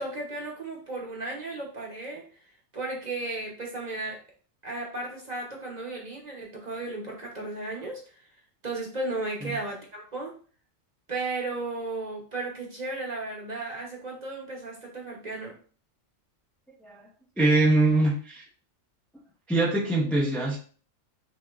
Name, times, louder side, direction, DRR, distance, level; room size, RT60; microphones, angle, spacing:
voice 1, 0.0-2.2 2.7-4.2 4.6-8.0 8.6-10.4 11.1-15.6, right 2 dB, 35° right, -1 dB, 1.0 m, -34 dB
voice 2, 17.4-18.4 19.5-20.6, right 2 dB, ahead, -3 dB, 0.5 m, -23 dB
5.9 x 2.9 x 2.5 m, 0.40 s
omnidirectional pair, 1.4 m